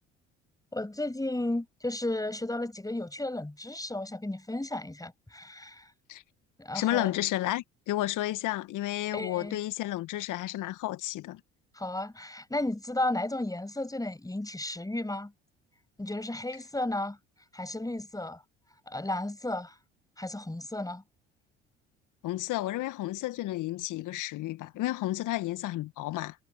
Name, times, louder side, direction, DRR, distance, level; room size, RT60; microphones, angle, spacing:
voice 1, 0.7-5.9 6.6-7.1 9.1-9.6 11.7-15.3 16.0-17.2 17.5-18.4 18.9-19.8 20.2-21.0, left 1 dB, 10° left, 7.9 m, -33 dB
voice 2, 6.7-11.4 22.2-26.4, left 15 dB, 60° left, 2.0 m, -32 dB
hypercardioid pair, 55°, 35 cm